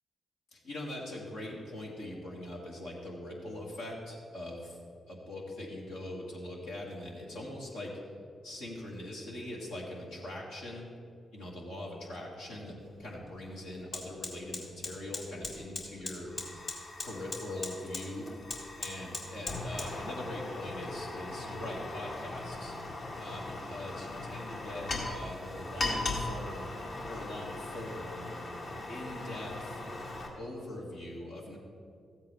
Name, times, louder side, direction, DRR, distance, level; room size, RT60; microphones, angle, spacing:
voice 1, 0.5-4.8 5.1-7.9 8.4-10.9 11.3-16.3 17.0-18.3 18.8-22.7 23.2-26.7 27.1-28.3 28.9-29.8 30.4-31.6, left 1 dB, 85° left, -5 dB, 2.0 m, -42 dB
Fire, 12.8-12.9 13.3-30.3, left 2 dB, 65° left, 1.9 m, -39 dB
14.5 x 8.2 x 3.3 m, 2.3 s
hypercardioid pair, 40°, 0 cm